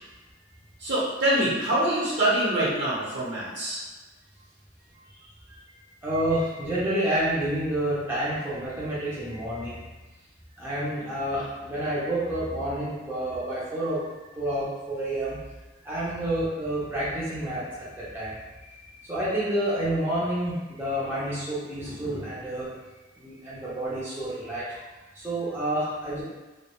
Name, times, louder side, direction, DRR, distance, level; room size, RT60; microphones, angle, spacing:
voice 1, 0.8-3.8, right 1 dB, 65° right, -7 dB, 0.9 m, -25 dB
voice 2, 6.0-9.8 10.6-14.0 14.4-15.4 15.8-18.4 19.1-22.7 23.2-24.7 25.1-26.2, right 1 dB, 10° right, -10 dB, 0.5 m, -29 dB
2.2 x 2.1 x 2.9 m, 1.2 s
head